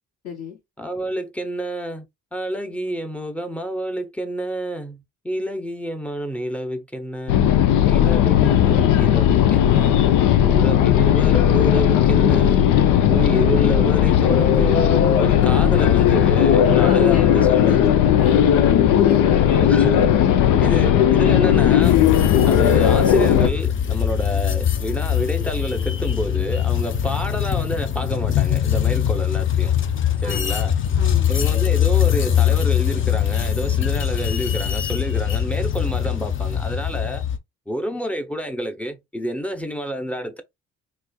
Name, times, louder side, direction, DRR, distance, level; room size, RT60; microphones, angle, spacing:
voice 1, 0.2-0.6 16.6-18.6 19.0-19.5 20.6-20.8 30.2-30.5 30.9-31.3, left 6 dB, 60° left, 2.3 m, -34 dB
voice 2, 0.8-2.1 2.3-7.4 7.9-10.0 10.4-12.7 13.1-17.9 19.3-20.1 20.6-22.0 22.4-29.8 30.2-30.8 31.3-37.2 37.7-40.4, right 1 dB, 5° left, 0.6 m, -28 dB
Moscow Metro, 7.3-23.5, left 10 dB, 85° left, 0.5 m, -16 dB
sound 1, 21.8-37.4, left 9 dB, 40° left, 0.6 m, -22 dB
4.2 x 2.5 x 2.2 m
cardioid pair, 90°, 30 cm